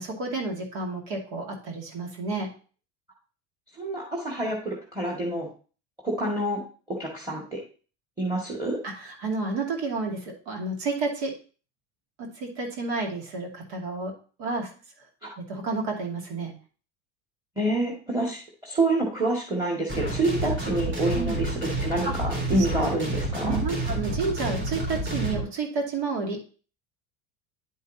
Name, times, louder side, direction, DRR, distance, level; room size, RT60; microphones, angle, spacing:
voice 1, 0.0-2.5 8.8-11.3 12.2-14.1 14.4-14.7 15.4-16.5 21.1-21.4 22.0-22.1 22.6-22.7 23.4-26.4, right 3 dB, 80° right, 1 dB, 2.4 m, -30 dB
voice 2, 3.8-5.5 6.0-6.6 6.9-7.6 8.2-8.8 15.2-15.3 17.6-23.6, right 2 dB, 10° right, -3 dB, 2.0 m, -27 dB
sound 1, 19.9-25.4, right 1 dB, 35° right, 3.6 m, -29 dB
10.0 x 5.4 x 2.8 m, 0.38 s
supercardioid pair, 120°, 32 cm